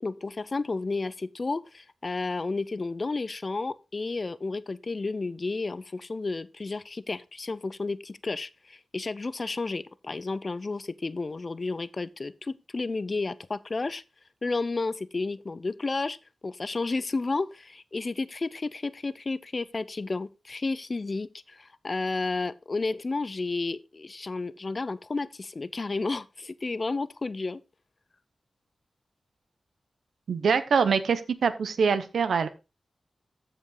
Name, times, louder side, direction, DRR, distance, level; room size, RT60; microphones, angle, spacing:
voice 1, 0.0-14.0 14.4-16.2 16.4-27.6, left 3 dB, 50° left, 0.6 m, -32 dB
voice 2, 30.3-32.5, right 5 dB, 90° right, 0.9 m, -24 dB
14.5 x 5.2 x 3.9 m
cardioid pair, 50°, 0 cm